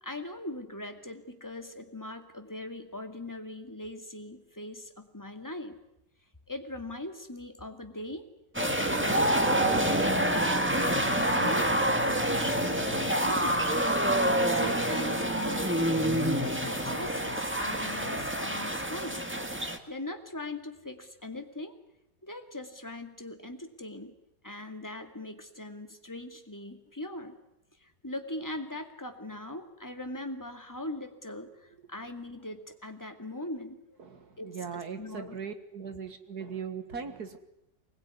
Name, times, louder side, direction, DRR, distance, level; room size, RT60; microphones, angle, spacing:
voice 1, 0.0-5.8 6.5-8.3 10.8-13.9 14.5-19.3 19.5-21.7 22.2-24.2 24.4-27.4 27.8-34.0 34.4-35.4, left 1 dB, 10° left, 6 dB, 2.0 m, -41 dB
sound 1, 8.5-19.8, right 1 dB, 5° right, 1.7 m, -27 dB
voice 2, 34.0-37.4, right 6 dB, 60° right, 8 dB, 2.3 m, -39 dB
25.0 x 20.5 x 9.8 m, 0.84 s
omnidirectional pair, 2.0 m